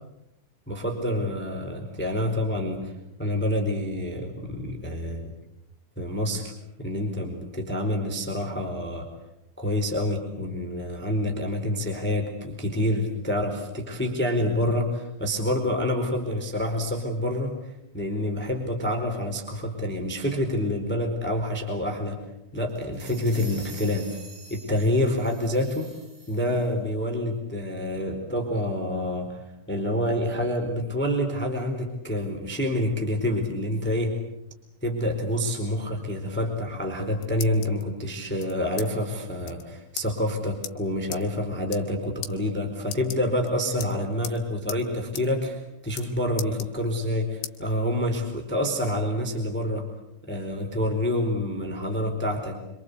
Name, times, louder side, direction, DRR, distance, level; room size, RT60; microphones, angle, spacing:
voice 1, 0.7-2.9 3.2-5.3 6.0-6.5 6.8-9.1 9.6-17.6 17.9-22.2 22.5-24.2 24.5-25.9 26.3-34.2 34.8-49.8 50.2-52.6, left 1 dB, ahead, 3 dB, 3.6 m, -27 dB
sound 1, 22.7-26.7, right 3 dB, 40° right, 6.8 m, -47 dB
sound 2, 36.8-37.8 38.4-38.9 39.2-39.3 39.4-39.6 40.0-40.1 40.6-40.7 41.1-41.2 41.6-41.9 42.2-42.3 42.8-43.5 43.8-44.4 44.7-44.8 45.1-45.3 45.5-46.1 46.4-47.1 47.4-47.6 48.1-48.9, left 11 dB, 70° left, 3.2 m, -37 dB
26.5 x 26.5 x 8.3 m, 0.88 s
omnidirectional pair, 5.5 m